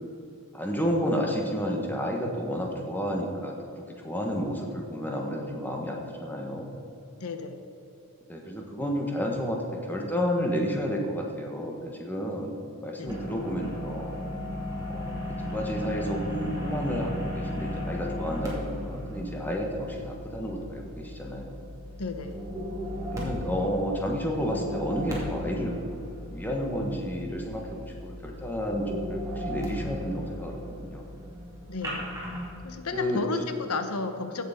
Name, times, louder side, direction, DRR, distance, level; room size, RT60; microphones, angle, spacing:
voice 1, 0.5-6.8 8.3-12.5 12.8-14.1 14.9-21.6 23.1-31.0 32.9-33.2, equal, 10° left, 0 dB, 1.4 m, -31 dB
voice 2, 7.2-7.6 13.0-13.1 22.0-22.3 31.7-32.0 32.6-34.4, left 3 dB, 85° left, 8 dB, 0.9 m, -33 dB
sound 1, 13.1-32.5, equal, 15° right, 2.5 m, -36 dB
15.5 x 6.8 x 5.2 m, 2.8 s
head